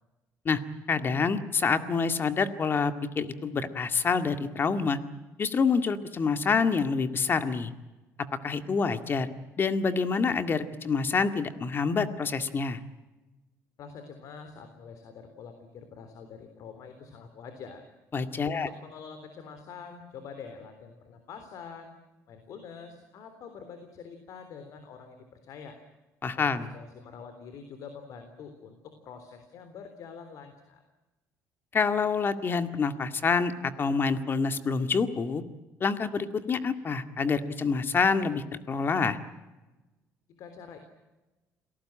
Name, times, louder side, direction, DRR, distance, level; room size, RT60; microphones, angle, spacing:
voice 1, 0.9-5.0 5.4-7.7 8.4-9.3 9.6-12.8 18.1-18.7 26.2-26.7 31.7-35.4 35.8-39.2, left 5 dB, 35° left, 8 dB, 2.0 m, -27 dB
voice 2, 13.8-17.9 18.4-22.0 22.3-25.8 26.4-30.8 40.3-40.8, left 6 dB, 65° left, 8 dB, 3.6 m, -46 dB
28.0 x 18.5 x 8.9 m, 1.1 s
cardioid pair, 110°, 6 cm